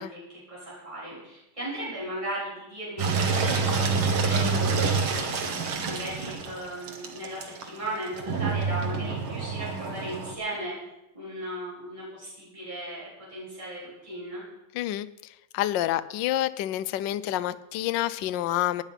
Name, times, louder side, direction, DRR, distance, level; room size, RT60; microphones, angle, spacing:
voice 1, 0.0-5.3 5.9-10.7 11.1-14.4, right 1 dB, 15° right, -8 dB, 7.4 m, -37 dB
Engine, 3.0-10.3, right 4 dB, 75° right, 2.4 m, -27 dB
voice 2, 14.7-15.1 15.5-18.8, left 14 dB, 70° left, 13 dB, 1.2 m, -28 dB
17.5 x 9.8 x 5.8 m, 0.93 s
omnidirectional pair, 2.3 m